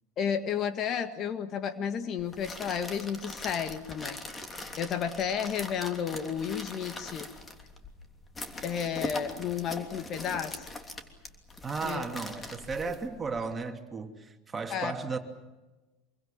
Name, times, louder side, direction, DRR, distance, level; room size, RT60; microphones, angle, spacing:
voice 1, 0.2-4.2 4.8-7.3 8.6-10.7 11.8-12.0 14.7-14.9, left 7 dB, 45° left, 1.8 m, -32 dB
sound 1, 2.2-13.5, left 2 dB, 20° left, 3.1 m, -42 dB
voice 2, 11.6-15.2, right 4 dB, 20° right, 2.8 m, -35 dB
26.0 x 23.5 x 7.5 m
hypercardioid pair, 80°, 0 cm